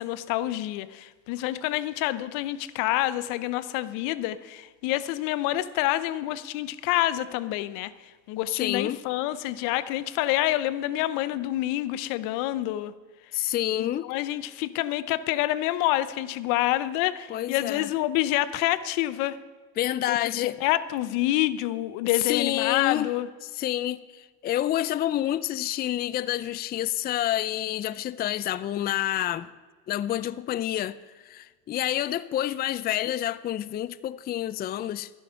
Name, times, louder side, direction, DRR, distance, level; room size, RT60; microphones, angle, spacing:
voice 1, 0.0-7.9 8.3-12.9 13.8-19.4 20.1-23.3, left 15 dB, 80° left, 0.8 m, -27 dB
voice 2, 8.5-9.0 13.3-14.1 17.3-17.9 19.8-20.6 22.1-23.1 23.4-29.5 29.9-31.0 31.2-35.1, left 13 dB, 30° left, 0.4 m, -28 dB
14.0 x 11.5 x 5.7 m
cardioid pair, 120°, 31 cm